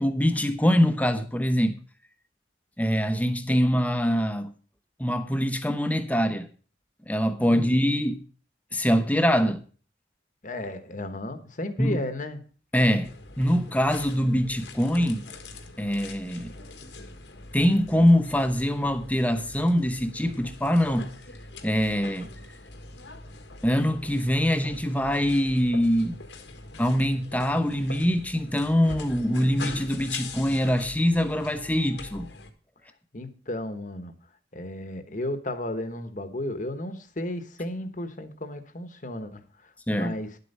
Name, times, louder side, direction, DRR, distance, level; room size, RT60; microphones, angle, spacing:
voice 1, 0.0-1.8 2.8-4.5 5.0-6.5 7.1-8.2 8.7-9.6 11.8-12.0 12.7-13.1 13.4-15.2 15.8-16.5 17.5-21.1 21.6-22.3 23.6-26.2 26.8-32.3 39.9-40.1, equal, 10° left, 1.0 m, -23 dB
voice 2, 7.5-7.8 10.4-12.4 33.1-34.1 34.5-39.4 39.9-40.3, left 1 dB, 45° left, 1.3 m, -33 dB
sound 1, 13.0-32.5, left 3 dB, 75° left, 1.6 m, -43 dB
11.0 x 8.0 x 5.4 m
head